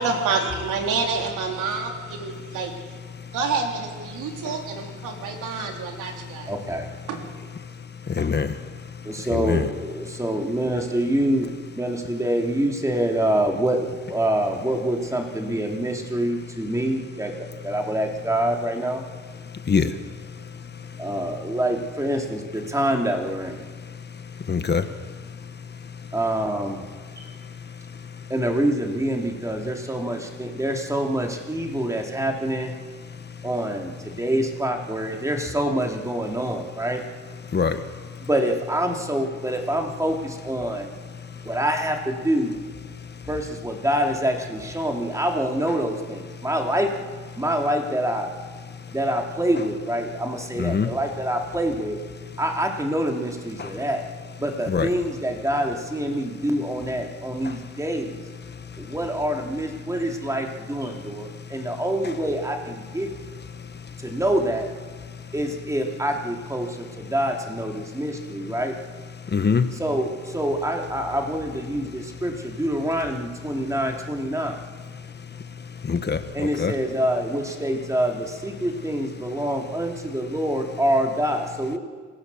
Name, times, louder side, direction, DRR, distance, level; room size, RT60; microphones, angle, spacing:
voice 1, 0.0-2.7 3.3-6.5 7.1-7.2, right 4 dB, 85° right, 2 dB, 3.7 m, -28 dB
voice 2, 6.5-6.9 9.0-17.4 17.6-19.0 21.0-23.6 26.1-26.9 27.2-27.3 28.3-32.7 33.4-37.0 38.2-40.9 41.4-42.6 43.2-46.9 47.4-48.3 48.9-52.0 52.4-54.0 54.4-58.2 58.8-63.1 64.0-64.7 65.3-68.7 69.7-74.6 76.3-81.8, right 1 dB, 10° right, 2 dB, 3.4 m, -26 dB
voice 3, 8.2-8.5 9.3-9.7 19.7-19.9 24.5-24.8 37.5-37.8 50.6-50.9 54.7-54.9 69.3-69.6 75.9-76.2 76.6-76.7, left 6 dB, 35° left, 10 dB, 1.3 m, -22 dB
27.0 x 16.5 x 7.3 m, 1.5 s
cardioid pair, 90°, 30 cm